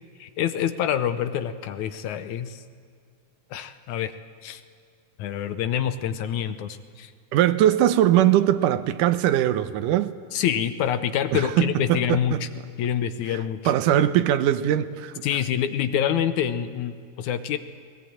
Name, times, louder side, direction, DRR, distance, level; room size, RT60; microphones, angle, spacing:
voice 1, 0.2-2.6 3.5-4.1 4.4-4.6 5.2-7.1 10.3-12.5 12.8-13.7 15.2-17.6, left 9 dB, 75° left, 2.1 m, -26 dB
voice 2, 7.3-10.1 11.3-12.4 13.7-15.2, right 12 dB, 85° right, 2.3 m, -21 dB
21.0 x 19.0 x 8.8 m
omnidirectional pair, 3.7 m